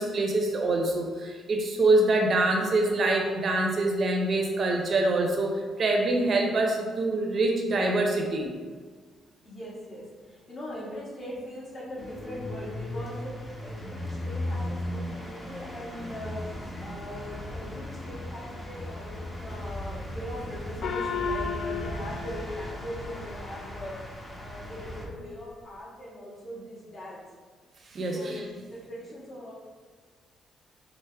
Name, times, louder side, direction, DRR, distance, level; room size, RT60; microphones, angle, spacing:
voice 1, 0.0-8.5 27.9-28.5, right 2 dB, 50° right, 1 dB, 0.5 m, -25 dB
voice 2, 9.4-16.4 16.8-24.0 24.4-27.2 28.1-29.5, equal, 40° left, -7 dB, 1.5 m, -40 dB
sound 1, 12.0-25.1, left 1 dB, 15° left, 0.7 m, -37 dB
Gong, 20.8-23.7, left 5 dB, 60° left, 0.3 m, -34 dB
4.5 x 2.0 x 3.3 m, 1.5 s
cardioid pair, 90°, 0 cm